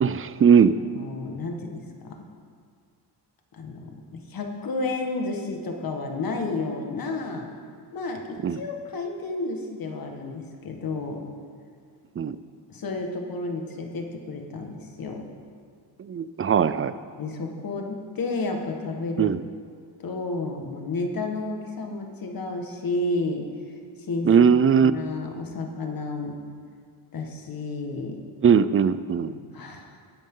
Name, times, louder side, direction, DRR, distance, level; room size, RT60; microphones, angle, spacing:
voice 1, 0.0-0.8 8.4-8.6 12.2-12.4 16.0-16.9 19.2-19.4 24.2-24.9 28.4-29.3, right 7 dB, 35° right, 13 dB, 0.4 m, -19 dB
voice 2, 0.8-2.2 3.5-7.5 7.9-11.2 12.7-15.3 17.2-19.3 20.0-23.5 24.0-24.3 24.8-26.3 27.1-28.2 29.5-29.9, left 3 dB, 55° left, 3 dB, 1.7 m, -31 dB
19.0 x 11.0 x 3.8 m, 2.1 s
wide cardioid pair, 140°, 42 cm